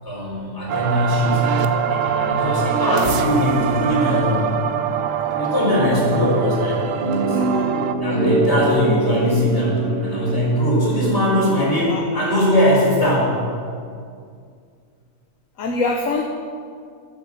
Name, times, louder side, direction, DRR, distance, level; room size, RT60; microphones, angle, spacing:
voice 1, 0.0-4.4 5.2-7.5 8.0-13.3, left 1 dB, 45° left, -4 dB, 4.3 m, -20 dB
sound 1, 0.7-7.9, right 9 dB, 65° right, 0.9 m, -23 dB
sound 2, 7.0-12.1, right 2 dB, 30° right, 4.0 m, -24 dB
voice 2, 7.3-7.6 11.9-12.3 15.6-16.2, left 3 dB, 60° left, 2 dB, 1.3 m, -25 dB
12.5 x 8.9 x 7.2 m, 2.2 s
omnidirectional pair, 1.6 m